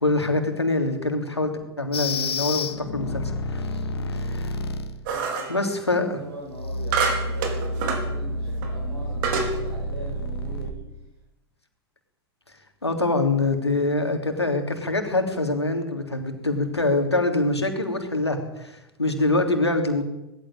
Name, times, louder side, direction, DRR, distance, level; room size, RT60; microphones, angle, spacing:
voice 1, 0.0-3.8 4.1-4.6 5.5-6.2 12.8-20.0, left 2 dB, 85° left, 5 dB, 3.3 m, -24 dB
sound 1, 1.9-5.0 6.4-10.7, left 1 dB, 70° left, 2.2 m, -29 dB
voice 2, 3.8-4.3 5.1-5.6 5.8-10.8, right 2 dB, 80° right, -3 dB, 7.4 m, -41 dB
sound 2, 5.1-5.6 6.9-8.1 8.6-8.7 9.2-9.6, right 5 dB, 55° right, 4.4 m, -26 dB
20.0 x 15.5 x 9.0 m, 0.94 s
figure-of-eight pair, 85°, 13 cm